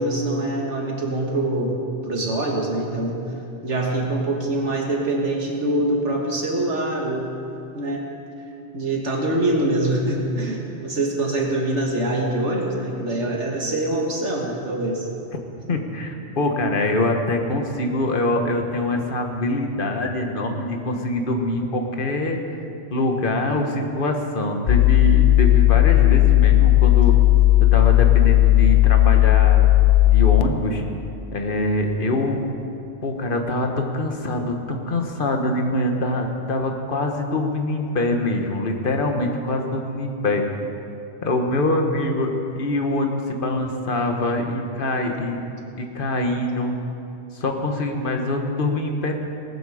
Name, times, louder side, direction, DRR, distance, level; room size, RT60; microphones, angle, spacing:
voice 1, 0.0-1.7 2.0-3.2 3.6-7.3 7.7-8.1 8.7-15.1, right 1 dB, 75° right, -1 dB, 2.1 m, -24 dB
voice 2, 15.7-22.4 22.9-27.2 27.7-29.6 30.0-30.8 31.3-32.5 33.0-40.5 41.2-45.4 45.8-46.7 47.3-49.1, left 2 dB, 45° left, 3 dB, 1.5 m, -24 dB
sound 1, 24.7-30.4, left 16 dB, 85° left, 1.0 m, -15 dB
19.0 x 13.5 x 5.0 m, 2.7 s
omnidirectional pair, 1.2 m